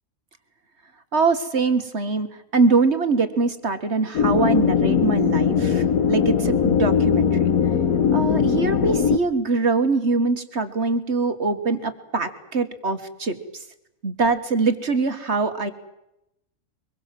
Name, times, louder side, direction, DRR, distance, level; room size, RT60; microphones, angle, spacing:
voice 1, 1.1-2.3 2.5-7.5 8.1-13.6 14.0-15.7, right 4 dB, 50° right, 8 dB, 1.9 m, -23 dB
sound 1, 4.1-9.2, left 7 dB, 90° left, 1.5 m, -20 dB
24.5 x 21.5 x 7.6 m, 0.86 s
omnidirectional pair, 1.5 m